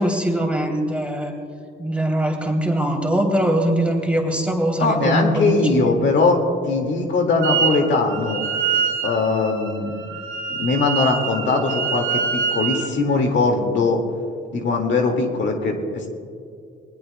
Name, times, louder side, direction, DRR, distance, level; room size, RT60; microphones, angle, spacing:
voice 1, 0.0-1.3 1.8-5.9, right 1 dB, 5° right, 0 dB, 2.9 m, -22 dB
voice 2, 4.8-6.4 6.6-8.4 9.0-9.9 10.5-14.0 14.5-16.1, left 3 dB, 65° left, 3 dB, 2.0 m, -20 dB
Wind instrument woodwind instrument, 7.4-12.9, right 6 dB, 70° right, 2.4 m, -25 dB
20.0 x 20.0 x 2.2 m, 2.3 s
cardioid pair, 90°, 20 cm